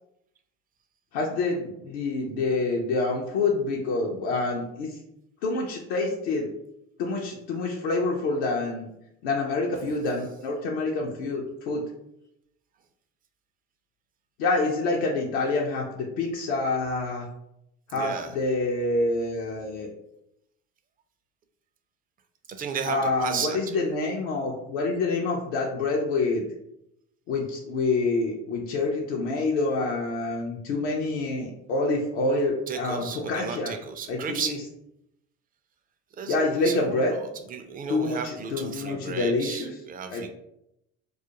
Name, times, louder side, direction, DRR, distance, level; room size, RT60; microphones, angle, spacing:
voice 1, 1.1-5.0 5.4-6.5 7.0-8.9 9.2-11.8 14.4-17.3 17.9-19.9 22.9-26.5 27.3-33.7 34.1-34.6 36.3-37.1 37.9-39.7 40.1-40.3, left 3 dB, 75° left, -1 dB, 0.5 m, -27 dB
voice 2, 17.9-18.4 22.5-23.8 32.7-34.6 36.2-37.2 37.5-40.3, right 6 dB, 25° right, 7 dB, 0.4 m, -34 dB
2.4 x 2.1 x 2.8 m, 0.80 s
hypercardioid pair, 70°, 32 cm